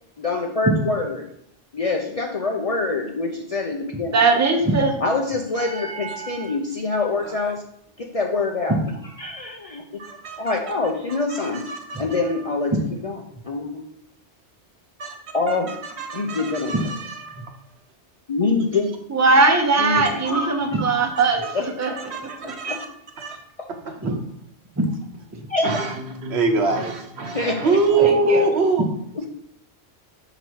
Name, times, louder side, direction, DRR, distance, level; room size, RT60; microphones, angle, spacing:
voice 1, 0.2-1.2 1.7-4.2 5.0-7.6 8.0-8.8 9.0-9.8 10.4-11.6 12.0-12.7 13.0-13.8 15.3-15.7 16.1-16.7 18.3-18.9 19.8-20.9 21.5-21.6 22.7-22.8 25.5-25.8 27.3-28.5, left 3 dB, 45° left, 1 dB, 0.5 m, -25 dB
voice 2, 4.1-5.0 8.7-8.8 12.7-12.8 16.7-16.8 19.1-21.9 22.6-22.7 24.0-24.1 24.8-24.9 28.0-28.4, right 3 dB, 20° right, 4 dB, 0.5 m, -20 dB
voice 3, 5.5-6.6 7.2-7.6 10.0-10.6 11.1-12.5 15.0-17.6 21.1-22.9 23.2-23.4 23.7-23.9 25.6-28.9, right 3 dB, 75° right, 5 dB, 1.1 m, -26 dB
5.6 x 3.9 x 4.6 m, 0.73 s
omnidirectional pair, 1.1 m